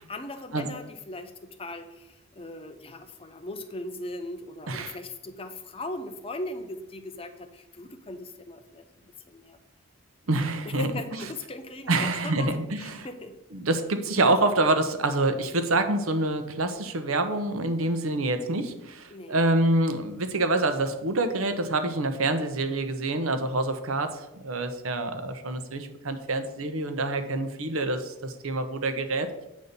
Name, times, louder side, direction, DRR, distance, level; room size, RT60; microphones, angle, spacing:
voice 1, 0.0-9.6 10.6-13.4 19.1-19.4, left 2 dB, 25° left, 8 dB, 0.6 m, -39 dB
voice 2, 10.3-10.9 11.9-13.1 13.5-29.4, right 2 dB, 75° right, 8 dB, 0.9 m, -26 dB
8.5 x 4.2 x 6.7 m, 0.94 s
head